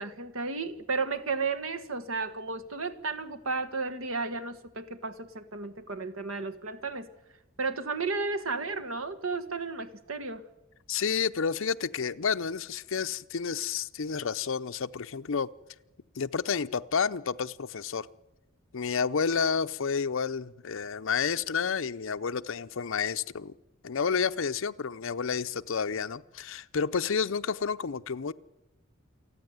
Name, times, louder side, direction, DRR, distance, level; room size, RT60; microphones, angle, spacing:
voice 1, 0.0-7.1 7.6-10.4, right 4 dB, 75° right, 1.6 m, -33 dB
voice 2, 10.9-15.5 16.1-18.1 18.7-23.5 23.8-28.3, left 6 dB, 65° left, 0.6 m, -30 dB
28.5 x 9.8 x 9.4 m
head